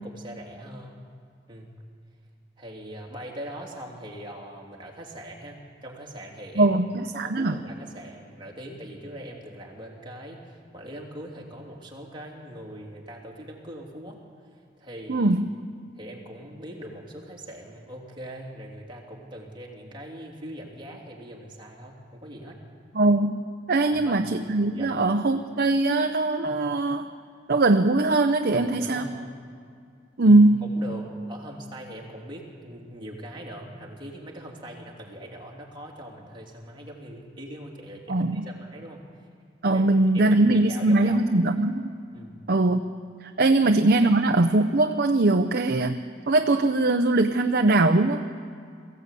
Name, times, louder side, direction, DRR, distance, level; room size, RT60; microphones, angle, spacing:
voice 1, 0.0-1.0 1.5-1.7 2.6-6.7 7.1-14.2 14.8-15.3 15.9-22.6 23.9-24.2 24.7-24.9 28.5-29.3 30.2-39.0 39.7-41.2 42.1-42.3 43.5-43.6 44.0-44.1, equal, 25° right, -2 dB, 3.3 m, -41 dB
voice 2, 6.6-7.6 15.1-15.5 22.9-23.4 23.7-27.1 27.5-29.1 30.2-30.7 38.1-38.5 39.6-41.9 42.5-42.8 43.4-46.0 46.3-48.2, right 2 dB, 55° right, 6 dB, 0.8 m, -21 dB
22.5 x 16.0 x 8.4 m, 2.3 s
head